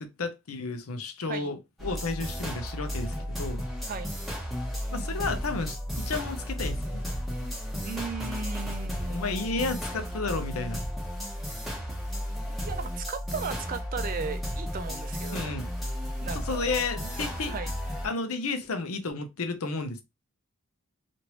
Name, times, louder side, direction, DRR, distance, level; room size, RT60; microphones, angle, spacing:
voice 1, 0.2-3.6 4.9-7.0 9.1-10.8 15.3-15.7 16.3-17.6 18.0-20.0, left 3 dB, 80° left, 0.7 m, -32 dB
sound 1, 1.8-18.1, equal, ahead, 0.9 m, -33 dB
voice 2, 7.8-9.3 12.5-15.6 16.2-16.9 17.3-17.7, right 5 dB, 40° right, 0.5 m, -37 dB
3.1 x 2.6 x 3.0 m
head